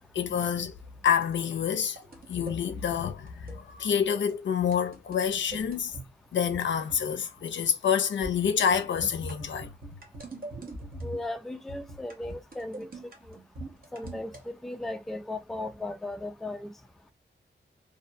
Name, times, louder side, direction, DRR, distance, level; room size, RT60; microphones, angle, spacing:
voice 1, 0.1-0.7 1.0-2.0 2.3-5.9 6.3-9.7, left 7 dB, 70° left, 0.5 m, -27 dB
sound 1, 1.1-2.6 3.3-3.6 3.9-4.0 4.3-4.4 4.7-6.1 6.5-7.1 7.4-7.6 8.2-11.3 11.7-14.4, right 1 dB, 50° right, 0.9 m, -43 dB
voice 2, 11.0-12.9 13.3-13.4 13.9-16.7, left 2 dB, ahead, 0.3 m, -36 dB
2.5 x 2.0 x 2.6 m
cardioid pair, 60°, 19 cm